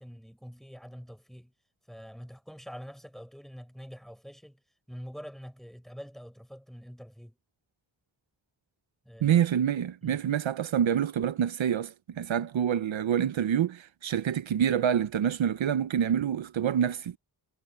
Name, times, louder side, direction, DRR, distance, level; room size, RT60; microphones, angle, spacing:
voice 1, 0.0-1.5 1.9-4.6 4.9-7.4 9.0-9.4 10.0-10.2, equal, ahead, 4.8 m, -45 dB
voice 2, 9.2-17.2, right 9 dB, 80° right, 0.9 m, -27 dB
wide cardioid pair, 135°, 46 cm